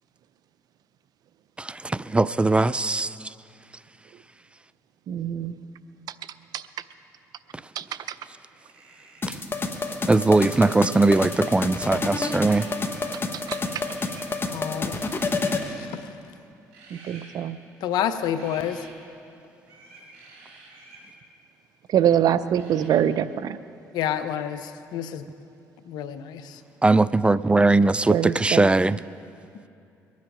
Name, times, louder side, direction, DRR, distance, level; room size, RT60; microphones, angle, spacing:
voice 1, 1.6-3.3 9.3-9.4 10.1-12.7 26.8-29.0, right 2 dB, 15° right, 18 dB, 0.3 m, -20 dB
voice 2, 5.1-5.6 6.5-6.6 7.8-7.9 13.5-13.6 16.9-17.6 21.9-23.6 28.1-28.6, right 10 dB, 65° right, 15 dB, 0.6 m, -23 dB
sound 1, 8.6-9.4 10.8-11.8 12.1-13.2 13.5-14.3 15.0-15.6 16.7-17.3 18.3-18.9 19.6-21.1 22.5-22.9, right 3 dB, 90° right, 2.5 m, -49 dB
sound 2, 9.2-15.7, left 3 dB, 30° left, 1.5 m, -29 dB
voice 3, 14.5-15.0 15.8-16.0 17.8-18.9 23.9-25.2 25.9-26.6, left 9 dB, 75° left, 11 dB, 0.8 m, -29 dB
22.5 x 9.5 x 5.0 m, 2.6 s
supercardioid pair, 60°, 7 cm